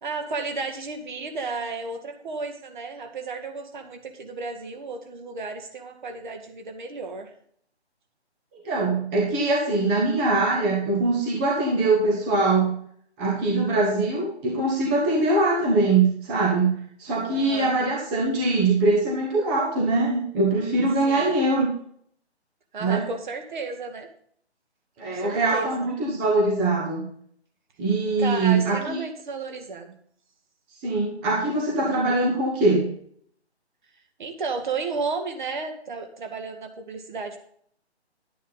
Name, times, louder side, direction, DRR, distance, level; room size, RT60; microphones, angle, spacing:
voice 1, 0.0-7.3 17.3-17.8 21.1-21.4 22.7-24.1 25.0-25.9 28.2-29.9 34.2-37.4, right 4 dB, 45° right, 5 dB, 2.0 m, -33 dB
voice 2, 8.5-12.8 13.2-21.7 22.8-23.0 25.0-27.0 27.8-29.0 30.8-32.9, right 2 dB, 10° right, -2 dB, 0.8 m, -22 dB
11.0 x 9.2 x 4.0 m, 0.63 s
figure-of-eight pair, 155°, 34 cm